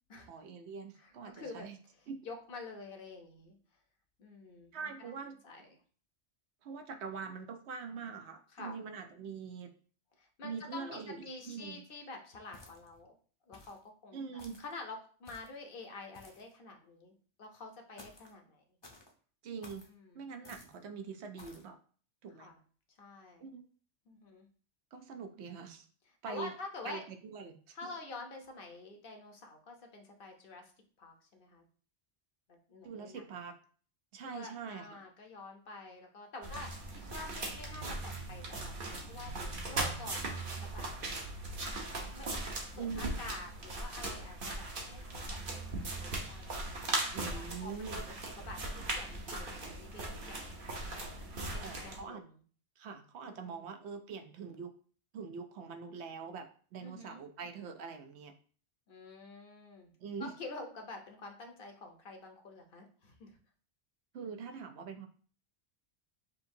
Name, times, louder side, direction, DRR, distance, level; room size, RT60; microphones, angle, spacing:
voice 1, 0.3-1.8 2.1-2.2 4.7-5.4 6.6-9.8 10.4-11.8 14.1-14.6 19.4-19.8 20.1-21.8 22.2-22.5 23.4-23.7 24.9-25.9 26.2-26.5 26.8-27.8 32.8-33.5 34.1-35.1 42.8-43.1 47.1-48.0 51.6-52.2 52.8-54.7 55.1-58.3 60.0-60.3 64.1-65.1, right 5 dB, 75° right, 6 dB, 0.9 m, -43 dB
voice 2, 1.0-1.7 1.9-3.6 4.2-5.1 5.4-5.8 8.5-8.8 10.2-13.2 13.5-18.6 19.9-20.2 22.4-22.6 23.0-23.4 24.1-24.5 26.2-27.0 27.7-30.7 31.0-31.6 32.5-33.2 34.2-41.2 42.1-42.3 42.7-50.8 51.5-52.4 53.2-53.7 56.8-57.2 58.9-59.9 60.2-63.4, left 3 dB, 55° left, 3 dB, 1.0 m, -48 dB
sound 1, 12.5-13.0 13.5-13.8 14.4-14.7 15.2-15.6 16.1-16.5 18.0-18.3 18.8-19.1 19.6-19.9 20.4-20.8 21.4-21.7, left 2 dB, 30° left, 0.6 m, -55 dB
sound 2, 36.4-52.0, right 2 dB, 55° right, 1.1 m, -39 dB
6.3 x 2.7 x 2.6 m, 0.43 s
omnidirectional pair, 1.1 m